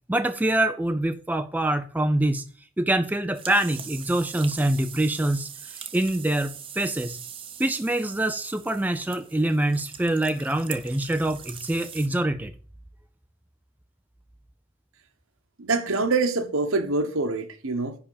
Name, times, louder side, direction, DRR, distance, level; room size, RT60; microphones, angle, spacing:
voice 1, 0.1-2.5 2.8-7.2 7.6-12.5, right 1 dB, 10° right, 0.4 m, -25 dB
sound 1, 3.3-12.1, right 8 dB, 25° right, 0.7 m, -42 dB
voice 2, 15.6-18.0, right 3 dB, 70° right, 1.2 m, -25 dB
10.0 x 3.6 x 7.3 m
head